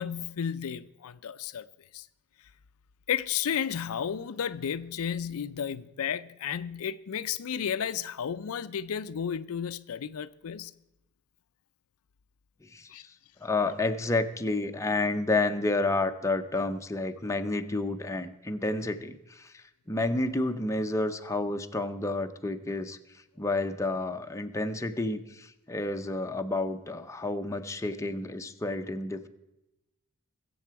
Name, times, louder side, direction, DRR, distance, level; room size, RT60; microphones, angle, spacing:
voice 1, 0.0-1.7 1.9-2.0 3.1-10.7 12.9-13.0, left 8 dB, 70° left, 0.4 m, -33 dB
voice 2, 12.6-13.1 13.4-23.0 23.4-29.3, left 2 dB, 15° left, 0.6 m, -30 dB
21.0 x 7.7 x 4.6 m
head